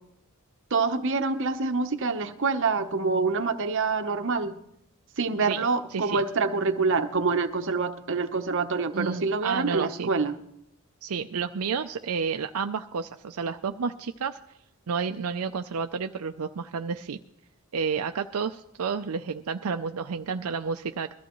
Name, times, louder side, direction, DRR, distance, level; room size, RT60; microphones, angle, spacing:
voice 1, 0.7-4.5 5.2-10.4, right 4 dB, 60° right, 7 dB, 1.0 m, -26 dB
voice 2, 5.9-6.3 8.9-10.1 11.0-14.4 14.9-17.2 17.7-21.1, right 5 dB, 80° right, 7 dB, 0.5 m, -31 dB
21.5 x 14.0 x 3.1 m, 0.78 s
head